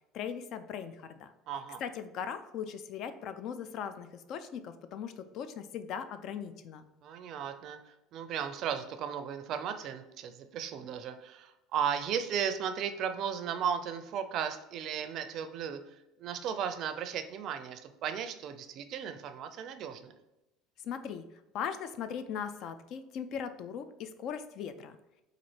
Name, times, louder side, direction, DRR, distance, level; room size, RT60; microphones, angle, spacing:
voice 1, 0.1-1.3 1.8-6.8 20.8-21.2 21.5-25.0, left 7 dB, 55° left, 10 dB, 0.3 m, -39 dB
voice 2, 1.5-1.8 7.0-20.1, right 8 dB, 55° right, 9 dB, 0.4 m, -35 dB
4.0 x 2.5 x 3.2 m, 0.94 s
supercardioid pair, 120°, 0 cm